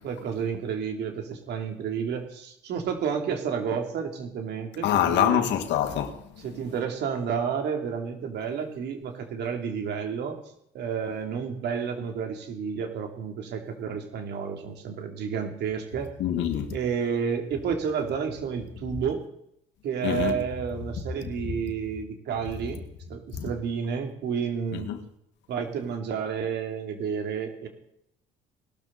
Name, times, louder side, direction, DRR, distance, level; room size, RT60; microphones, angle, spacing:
voice 1, 0.0-5.5 6.4-10.4 10.7-16.1 16.7-19.2 19.8-22.8 23.1-24.9 25.5-27.7, right 6 dB, 70° right, 3.3 m, -31 dB
voice 2, 4.8-6.2 16.2-16.7 20.0-20.3 23.4-23.5 24.7-25.0, left 10 dB, 80° left, 2.0 m, -25 dB
19.5 x 13.0 x 4.2 m
cardioid pair, 100°, 18 cm